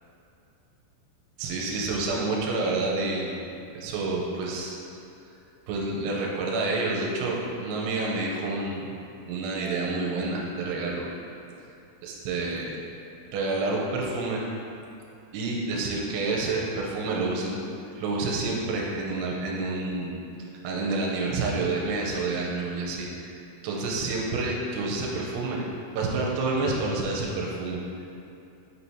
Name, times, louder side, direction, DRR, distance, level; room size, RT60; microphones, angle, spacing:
voice 1, 1.4-3.4 3.7-4.8 5.7-9.0 9.3-11.1 12.0-12.7 13.3-14.4 15.3-17.6 18.0-20.2 20.6-23.3 23.6-25.7 26.0-27.8, right 3 dB, 85° right, -2 dB, 2.9 m, -28 dB
6.2 x 5.7 x 2.8 m, 2.8 s
omnidirectional pair, 5.8 m